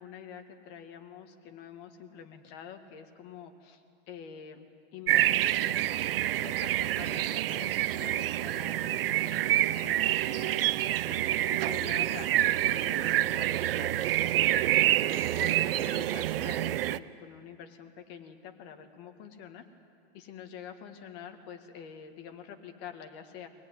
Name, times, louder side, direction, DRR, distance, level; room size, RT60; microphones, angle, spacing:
voice 1, 0.0-5.8 6.3-10.7 11.0-14.3 14.9-19.6 20.1-23.5, left 8 dB, 30° left, 5 dB, 1.8 m, -46 dB
sound 1, 5.1-17.0, right 13 dB, 60° right, 0.7 m, -27 dB
24.5 x 18.0 x 9.8 m, 2.4 s
supercardioid pair, 160°, 33 cm